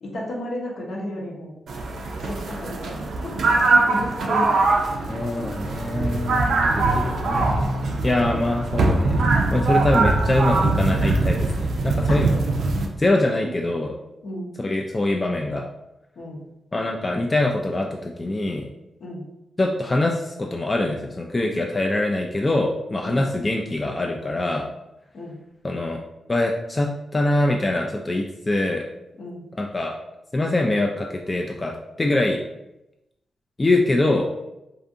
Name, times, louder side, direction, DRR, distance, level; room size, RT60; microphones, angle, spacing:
voice 1, 0.0-1.5 2.2-3.3 3.7-4.5 12.1-12.2 14.2-14.6 16.2-16.4 19.0-19.3 23.0-23.2 25.1-25.4 29.2-29.4, left 1 dB, 70° left, -2 dB, 0.7 m, -33 dB
sound 1, 1.7-12.9, right 3 dB, 75° right, 0.4 m, -22 dB
voice 2, 5.1-12.7 13.0-13.9 14.6-15.7 16.7-18.7 19.6-24.7 25.6-26.0 26.3-28.8 29.6-29.9 30.3-32.4 33.6-34.3, left 2 dB, 30° left, 1 dB, 0.3 m, -24 dB
2.5 x 2.4 x 2.6 m, 0.91 s
supercardioid pair, 50°, 0 cm